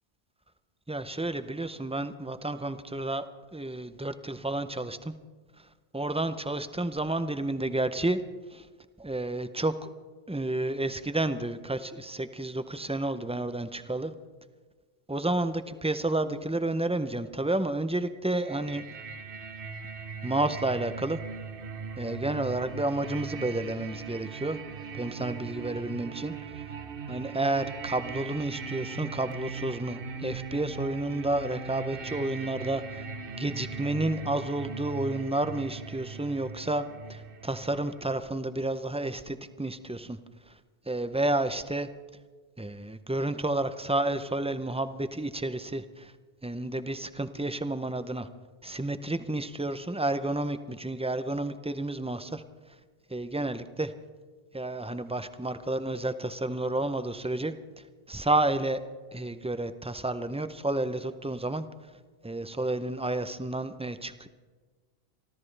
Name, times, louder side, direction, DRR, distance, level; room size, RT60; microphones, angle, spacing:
voice 1, 0.9-3.3 3.5-5.1 5.9-8.2 8.5-8.7 9.0-9.9 10.3-14.1 15.1-18.8 20.2-21.2 22.0-24.6 24.9-26.3 27.1-33.1 33.4-36.8 37.1-40.2 40.9-41.9 42.6-46.1 46.4-48.3 48.6-52.4 53.1-53.9 54.5-57.5 58.1-58.8 59.1-61.6 62.2-64.3, right 2 dB, 10° right, 11 dB, 0.3 m, -30 dB
sound 1, 18.4-38.2, right 5 dB, 60° right, 1.0 m, -39 dB
28.0 x 13.0 x 3.3 m, 1.4 s
omnidirectional pair, 1.1 m